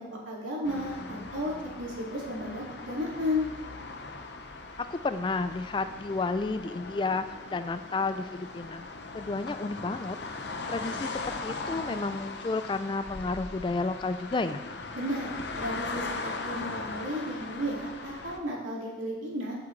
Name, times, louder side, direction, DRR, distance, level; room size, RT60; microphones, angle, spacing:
voice 1, 0.1-3.5 14.9-15.3 15.6-19.5, left 1 dB, 90° right, -4 dB, 2.5 m, -33 dB
sound 1, 0.6-18.4, left 3 dB, 60° left, 0.8 m, -39 dB
voice 2, 4.8-8.9 9.1-10.2 10.7-14.6, left 3 dB, 25° left, 11 dB, 0.3 m, -31 dB
14.0 x 6.0 x 3.3 m, 1.1 s
head